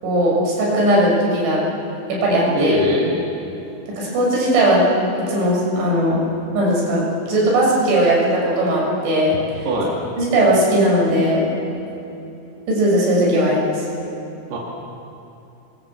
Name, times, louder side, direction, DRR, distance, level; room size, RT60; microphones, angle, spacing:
voice 1, 0.0-1.6 2.1-2.8 3.9-4.8 5.2-6.2 6.5-9.7 10.2-11.5 12.7-13.8, right 1 dB, 75° right, -4 dB, 9.1 m, -18 dB
voice 2, 2.5-3.2 9.7-10.0 14.5-14.6, left 1 dB, 60° right, -3 dB, 4.3 m, -21 dB
28.0 x 22.5 x 7.7 m, 2.8 s
omnidirectional pair, 5.4 m